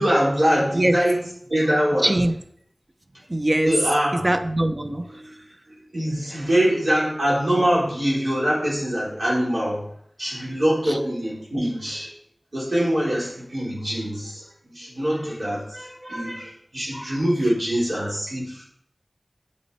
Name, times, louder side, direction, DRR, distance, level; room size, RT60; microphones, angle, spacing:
voice 1, 0.0-2.1 3.6-4.2 5.9-9.9 10.2-12.1 12.5-18.6, equal, 85° right, -6 dB, 4.0 m, -23 dB
voice 2, 2.0-2.3 3.3-3.7 4.2-5.3, right 1 dB, 40° right, 7 dB, 0.7 m, -22 dB
8.7 x 6.6 x 4.2 m, 0.68 s
wide cardioid pair, 55°, 0 cm